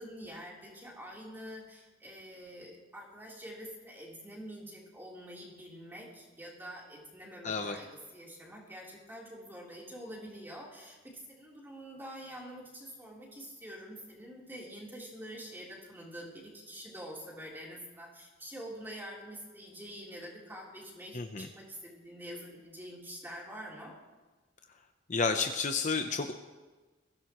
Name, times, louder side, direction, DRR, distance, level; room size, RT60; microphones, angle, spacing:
voice 1, 0.0-24.0, equal, 10° right, -4 dB, 3.7 m, -46 dB
voice 2, 7.4-7.8 21.1-21.5 25.1-26.3, left 4 dB, 40° left, 6 dB, 0.8 m, -31 dB
21.5 x 16.0 x 3.1 m, 1.3 s
head